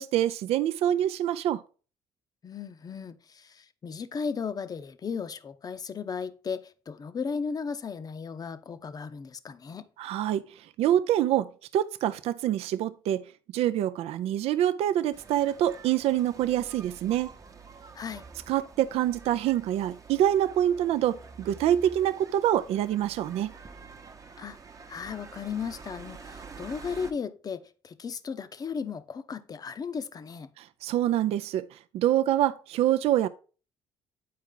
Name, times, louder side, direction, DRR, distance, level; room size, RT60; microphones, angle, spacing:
voice 1, 0.0-1.6 10.0-13.3 13.5-17.3 18.5-23.5 30.6-33.3, right 11 dB, 70° right, 0.4 m, -26 dB
voice 2, 2.4-9.9 17.9-18.2 24.4-24.6 24.9-30.5, left 6 dB, 35° left, 0.6 m, -35 dB
sound 1, 15.1-27.1, right 4 dB, 30° right, 0.9 m, -48 dB
8.4 x 4.6 x 3.8 m
supercardioid pair, 85°, 11 cm